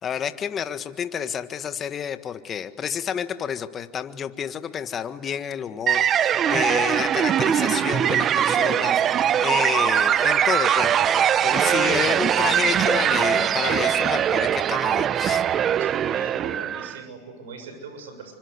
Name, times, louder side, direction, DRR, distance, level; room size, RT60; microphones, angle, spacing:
voice 1, 0.0-15.4, left 8 dB, 30° left, 10 dB, 1.6 m, -30 dB
sound 1, 5.9-17.0, right 9 dB, 30° right, 0.7 m, -21 dB
voice 2, 15.8-18.3, right 4 dB, 90° right, 7 dB, 6.8 m, -41 dB
27.0 x 25.5 x 8.2 m, 1.5 s
supercardioid pair, 125°, 0 cm